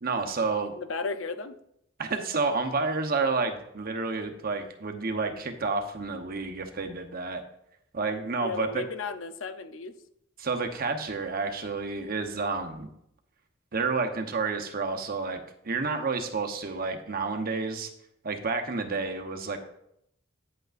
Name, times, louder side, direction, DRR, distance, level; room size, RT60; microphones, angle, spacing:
voice 1, 0.0-0.7 2.0-7.4 7.9-8.8 10.4-12.9 13.7-17.9 18.2-19.6, right 4 dB, 50° right, 5 dB, 0.9 m, -30 dB
voice 2, 0.8-1.6 8.4-9.9, left 4 dB, 75° left, 9 dB, 0.6 m, -34 dB
9.7 x 8.0 x 2.5 m, 0.75 s
head